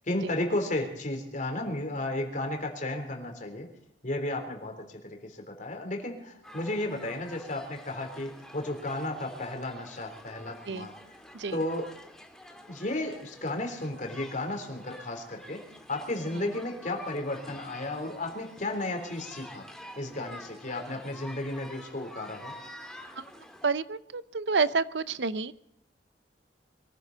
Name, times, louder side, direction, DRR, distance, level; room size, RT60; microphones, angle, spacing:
voice 1, 0.1-3.7 4.0-10.9 11.5-11.9 12.7-19.7 20.0-22.5, left 1 dB, 45° left, 4 dB, 3.5 m, -33 dB
sound 1, 6.4-23.7, left 1 dB, 5° left, 1.9 m, -48 dB
voice 2, 23.6-25.5, right 4 dB, 85° right, 16 dB, 0.7 m, -29 dB
23.0 x 14.5 x 4.1 m, 0.77 s
head